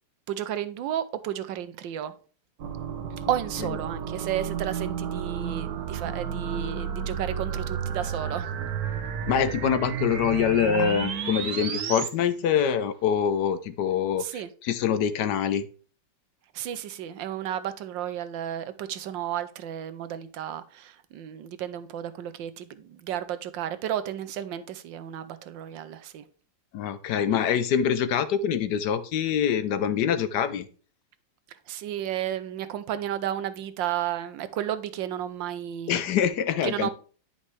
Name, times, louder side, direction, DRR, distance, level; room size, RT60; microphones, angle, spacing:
voice 1, 0.3-2.1 3.3-8.5 14.2-14.5 16.5-26.2 31.7-36.0 36.6-36.9, right 11 dB, 80° right, 1.4 m, -32 dB
sound 1, 2.6-12.1, right 7 dB, 60° right, 1.4 m, -32 dB
voice 2, 9.3-15.7 26.7-30.7 35.9-36.9, left 8 dB, 70° left, 1.2 m, -25 dB
9.9 x 5.3 x 3.2 m
omnidirectional pair, 2.0 m